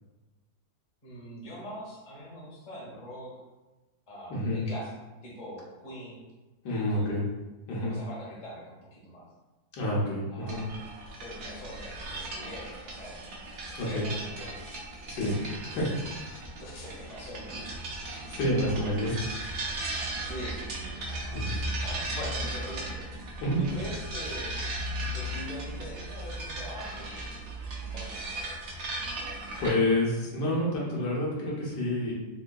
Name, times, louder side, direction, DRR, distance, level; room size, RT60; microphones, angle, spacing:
voice 1, 1.0-3.4 4.1-4.9 5.2-6.2 6.6-7.2 7.7-9.3 10.3-10.7 11.2-13.2 13.8-14.5 15.1-15.4 15.8-15.9 16.6-17.8 18.6-18.9 20.2-21.4 21.8-23.0 23.6-24.6 25.1-27.1 27.9-28.2, equal, 35° left, -4 dB, 0.9 m, -42 dB
voice 2, 4.3-4.6 6.6-7.2 7.7-7.9 9.7-10.6 13.7-14.1 15.1-15.3 15.7-15.8 18.3-19.3 21.3-21.6 23.4-23.6 29.6-32.1, left 1 dB, 75° left, -5 dB, 1.4 m, -28 dB
sound 1, 10.5-29.7, right 1 dB, 60° right, 0.8 m, -37 dB
3.6 x 3.5 x 2.2 m, 1.1 s
omnidirectional pair, 1.8 m